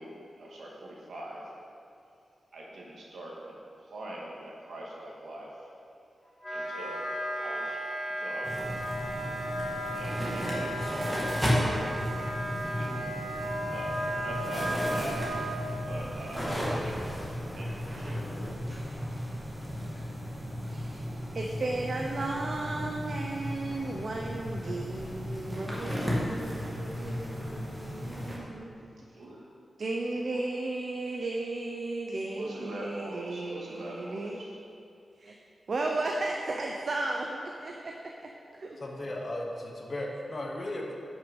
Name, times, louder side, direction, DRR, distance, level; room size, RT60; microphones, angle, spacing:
voice 1, 0.0-1.5 2.5-5.7 6.5-7.8 8.1-8.8 10.0-12.0 12.6-13.2 13.7-15.2 15.8-17.1 17.5-18.4 28.8-29.5 32.3-34.3, right 1 dB, 80° right, -3 dB, 2.0 m, -42 dB
Wind instrument woodwind instrument, 6.4-15.6, equal, 15° left, 1.6 m, -35 dB
sound 1, 8.4-28.4, equal, 10° right, 1.9 m, -34 dB
voice 2, 20.6-21.0 21.3-28.9 29.8-34.4 35.2-35.3 35.7-38.3 38.6-38.8, right 2 dB, 45° right, 0 dB, 0.7 m, -35 dB
voice 3, 38.8-40.9, left 1 dB, 35° left, -1 dB, 1.3 m, -36 dB
11.0 x 6.4 x 5.3 m, 2.5 s
wide cardioid pair, 180°, 0 cm